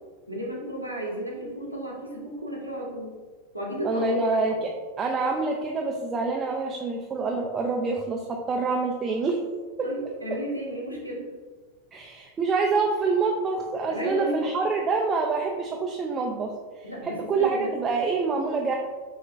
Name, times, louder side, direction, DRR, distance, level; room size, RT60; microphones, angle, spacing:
voice 1, 0.3-3.1 3.5-4.6 9.8-11.2 13.9-14.4 16.8-17.7, equal, 85° left, -3 dB, 1.0 m, -33 dB
voice 2, 3.8-4.7 5.0-9.4 11.9-18.8, right 4 dB, 25° right, 1 dB, 0.4 m, -26 dB
5.8 x 2.4 x 3.3 m, 1.4 s
figure-of-eight pair, 90°, 0 cm